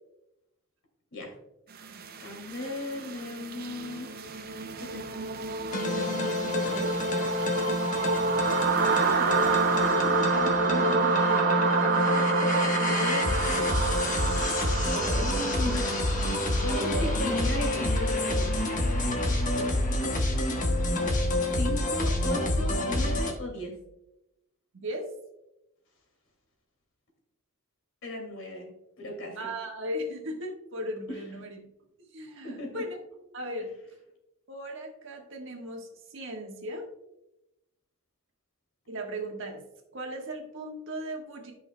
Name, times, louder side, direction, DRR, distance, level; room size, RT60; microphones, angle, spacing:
sound 1, 1.8-19.6, right 4 dB, 45° right, 0.6 m, -29 dB
voice 1, 2.2-4.1 4.8-5.2 9.0-9.4 10.0-10.3 12.1-12.2 12.6-13.9 15.1-18.6 21.6-23.8 28.0-28.7 29.0-29.4 31.1-31.2 32.4-32.8, left 2 dB, 60° left, 1 dB, 2.4 m, -36 dB
sound 2, 5.7-23.3, left 1 dB, 35° left, 1.1 m, -28 dB
voice 2, 6.5-7.0 10.3-11.6 12.1-12.5 14.9-15.3 16.7-17.1 19.6-19.8 24.7-25.1 29.4-31.6 32.0-33.0 33.3-33.7 34.5-36.9 38.9-39.6 39.9-41.5, right 1 dB, 60° right, 1 dB, 1.4 m, -37 dB
13.0 x 5.6 x 2.2 m, 0.89 s
head